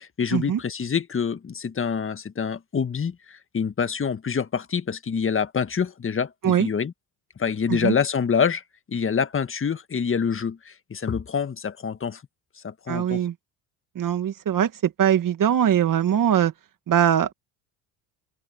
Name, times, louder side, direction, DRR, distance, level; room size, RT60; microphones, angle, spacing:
voice 1, 0.0-6.9 7.4-8.6 8.9-12.2 12.6-13.2, left 6 dB, 30° left, 1.7 m, -26 dB
voice 2, 12.9-13.3 14.0-16.5 16.9-17.3, right 9 dB, 45° right, 2.2 m, -21 dB
supercardioid pair, 80°, 44 cm